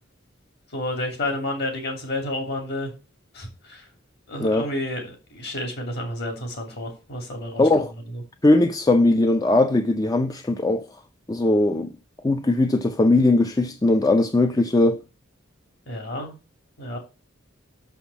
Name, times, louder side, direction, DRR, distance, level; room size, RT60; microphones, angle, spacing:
voice 1, 0.7-2.9 3.3-3.9 4.3-7.7 8.1-8.2 15.9-16.4 16.8-17.0, left 1 dB, 55° left, 2.8 m, -30 dB
voice 2, 7.6-7.9 8.4-10.9 11.3-11.9 12.2-15.0, left 2 dB, 20° left, 0.4 m, -19 dB
6.2 x 5.7 x 7.1 m
head